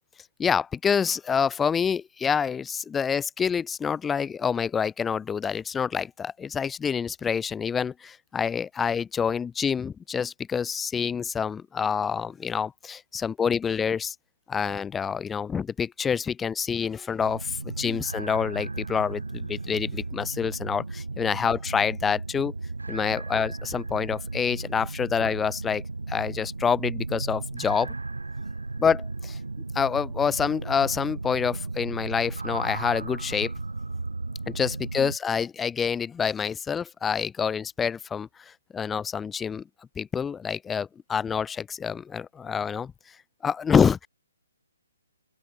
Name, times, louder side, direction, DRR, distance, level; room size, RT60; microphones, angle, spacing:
voice 1, 0.4-14.1 14.5-22.5 22.9-25.8 26.1-27.9 28.8-29.4 29.7-33.5 34.5-39.6 40.0-42.9 43.4-44.1, left 6 dB, 10° left, 1.1 m, -27 dB
drops & drone sfx, 17.2-35.2, right 3 dB, 80° right, 7.1 m, -35 dB
open air
figure-of-eight pair, 135°, 0 cm